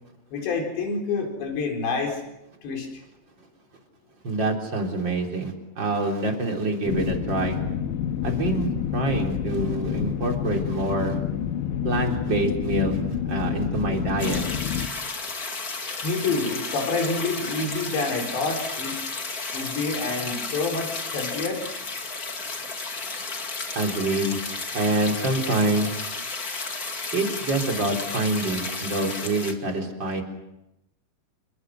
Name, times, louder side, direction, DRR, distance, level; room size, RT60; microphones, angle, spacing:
voice 1, 0.3-2.2 2.6-2.9 16.0-19.0 19.5-21.6, left 3 dB, 70° left, 2 dB, 6.5 m, -27 dB
voice 2, 4.2-7.6 8.2-11.2 11.8-14.4 23.7-24.4 24.7-25.9 27.1-30.2, right 2 dB, 25° right, 2 dB, 3.8 m, -26 dB
sound 1, 6.9-14.9, left 9 dB, 85° left, 3.5 m, -28 dB
sound 2, 14.2-29.5, left 3 dB, 35° left, 1.5 m, -33 dB
29.0 x 24.0 x 6.4 m, 0.90 s
omnidirectional pair, 5.3 m